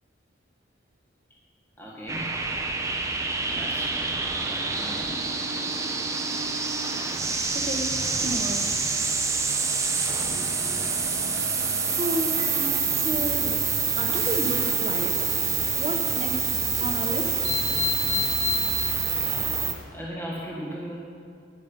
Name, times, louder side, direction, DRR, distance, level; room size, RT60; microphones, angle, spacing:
voice 1, 1.8-2.6 3.4-3.9 4.4-5.2 19.3-19.6 19.9-21.0, equal, 10° left, -5 dB, 1.4 m, -38 dB
sound 1, 2.1-19.7, right 5 dB, 15° right, 0.7 m, -27 dB
voice 2, 7.5-8.7 11.9-13.6 14.0-15.3 15.8-16.5 16.8-17.5, right 1 dB, 30° right, 3 dB, 1.0 m, -32 dB
sound 2, 10.3-19.0, left 6 dB, 45° left, 2.2 m, -36 dB
10.5 x 9.5 x 5.3 m, 2.3 s
head